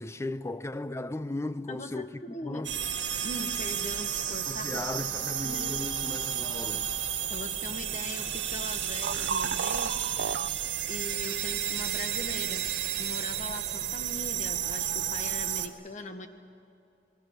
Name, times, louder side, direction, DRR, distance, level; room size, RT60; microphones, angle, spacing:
voice 1, 0.0-2.8 4.5-6.9, left 2 dB, 15° left, 0.5 m, -36 dB
voice 2, 1.7-2.7 3.2-5.1 5.4-5.8 7.3-10.0 10.9-12.7 13.0-16.3, left 2 dB, 40° left, 1.4 m, -41 dB
sound 1, 2.6-15.7, right 10 dB, 80° right, 1.6 m, -32 dB
sound 2, 9.0-10.5 11.2-11.3 12.0-12.1 12.7-12.8, right 6 dB, 55° right, 0.5 m, -33 dB
28.0 x 20.0 x 6.8 m
head